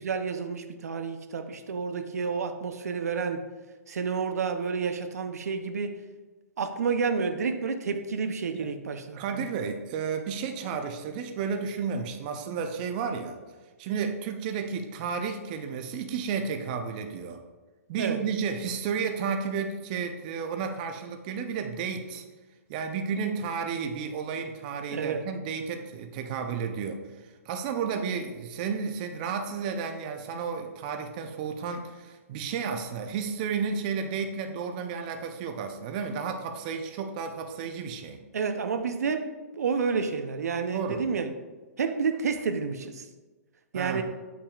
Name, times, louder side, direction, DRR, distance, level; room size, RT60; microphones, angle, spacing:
voice 1, 0.0-3.4 3.9-5.9 6.6-9.5 18.0-18.2 24.9-25.2 38.3-41.3 41.8-43.1 43.7-44.0, right 5 dB, 85° right, 8 dB, 0.6 m, -30 dB
voice 2, 9.1-13.4 13.8-17.4 17.9-22.2 22.7-27.0 27.5-38.2 40.7-41.0 43.7-44.0, right 6 dB, 35° right, 5 dB, 0.5 m, -32 dB
8.3 x 5.9 x 2.4 m, 1.2 s
hypercardioid pair, 155°, 8 cm